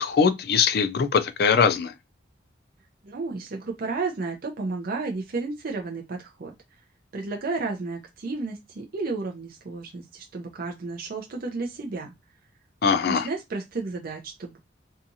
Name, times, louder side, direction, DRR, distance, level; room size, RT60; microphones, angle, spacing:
voice 1, 0.0-1.9 12.8-13.3, left 6 dB, 55° left, 0.3 m, -21 dB
voice 2, 3.0-6.5 7.1-12.1 13.1-14.6, right 3 dB, 50° right, 0.5 m, -32 dB
2.7 x 2.3 x 2.6 m
head